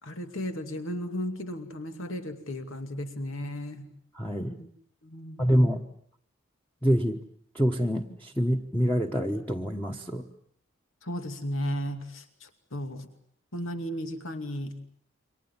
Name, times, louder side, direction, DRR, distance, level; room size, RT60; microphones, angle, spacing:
voice 1, 0.0-3.9 4.6-4.7 5.0-5.6 11.0-13.1 13.5-14.8, equal, 90° left, 7 dB, 2.6 m, -35 dB
voice 2, 4.2-4.6 5.4-5.8 6.8-7.2 7.5-10.3, equal, 10° left, 1 dB, 1.2 m, -26 dB
29.0 x 25.0 x 7.3 m, 0.64 s
head